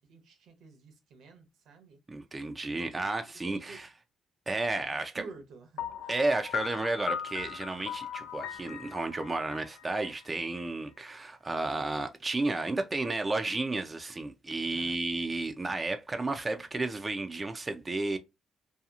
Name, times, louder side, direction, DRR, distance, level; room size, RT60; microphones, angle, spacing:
voice 1, 0.0-2.0 3.3-3.8 4.9-6.1 14.6-15.0, right 4 dB, 80° right, 0.9 m, -51 dB
voice 2, 2.1-3.9 4.5-5.3 6.1-18.2, right 2 dB, 25° right, 0.4 m, -32 dB
Piano, 5.8-10.6, left 9 dB, 90° left, 0.3 m, -38 dB
2.8 x 2.3 x 2.3 m
cardioid pair, 90°, 0 cm